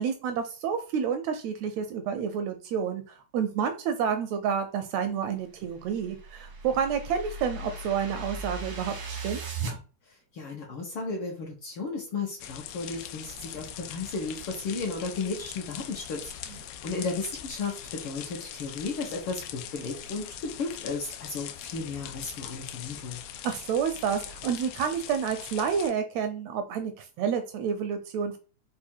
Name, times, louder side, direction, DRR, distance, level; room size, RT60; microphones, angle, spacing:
voice 1, 0.0-9.4 23.4-28.4, right 7 dB, 80° right, 7 dB, 1.6 m, -29 dB
sound 1, 5.7-9.8, right 3 dB, 60° right, 1.0 m, -37 dB
voice 2, 10.3-23.2, left 4 dB, 65° left, -1 dB, 1.4 m, -34 dB
sound 2, 12.4-25.9, left 10 dB, 80° left, 1.5 m, -42 dB
4.7 x 2.5 x 4.3 m, 0.34 s
omnidirectional pair, 3.3 m